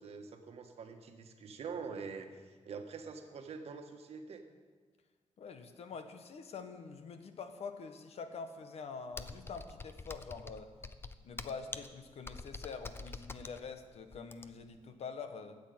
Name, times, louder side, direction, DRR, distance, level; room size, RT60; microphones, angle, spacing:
voice 1, 0.0-4.4, right 5 dB, 65° right, 5 dB, 1.4 m, -45 dB
voice 2, 5.4-10.7 11.2-15.6, left 5 dB, 65° left, 8 dB, 1.2 m, -45 dB
Computer keyboard, 9.1-14.8, left 3 dB, 20° left, 0.5 m, -46 dB
13.5 x 8.1 x 9.5 m, 1.5 s
wide cardioid pair, 175°, 11 cm